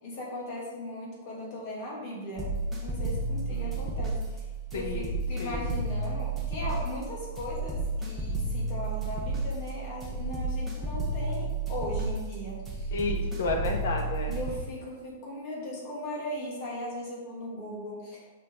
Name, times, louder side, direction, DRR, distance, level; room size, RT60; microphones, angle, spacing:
voice 1, 0.0-2.5 2.8-4.2 4.7-13.0 14.3-18.3, left 1 dB, 40° left, -4 dB, 2.9 m, -38 dB
sound 1, 2.4-14.5, right 2 dB, 5° right, 1.2 m, -32 dB
voice 2, 4.7-5.6 12.9-14.4, left 3 dB, 75° left, 2 dB, 1.6 m, -32 dB
8.6 x 6.3 x 4.0 m, 1.3 s
supercardioid pair, 170°, 0 cm